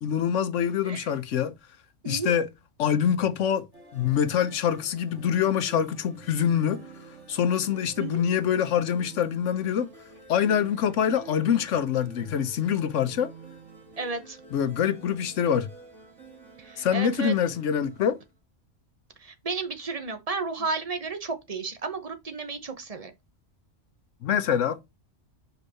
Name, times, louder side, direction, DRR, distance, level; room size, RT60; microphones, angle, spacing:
voice 1, 0.0-1.6 2.1-2.5 2.8-3.7 3.9-6.8 7.3-9.9 10.3-13.3 14.5-15.7 16.8-18.2 24.2-24.8, left 8 dB, 90° left, 1.1 m, -25 dB
voice 2, 2.0-2.4 8.0-8.2 14.0-14.4 16.6-17.3 19.2-23.1, right 4 dB, 35° right, 1.1 m, -33 dB
sound 1, 3.7-18.3, right 5 dB, 75° right, 2.5 m, -48 dB
5.3 x 4.6 x 4.1 m
omnidirectional pair, 1.2 m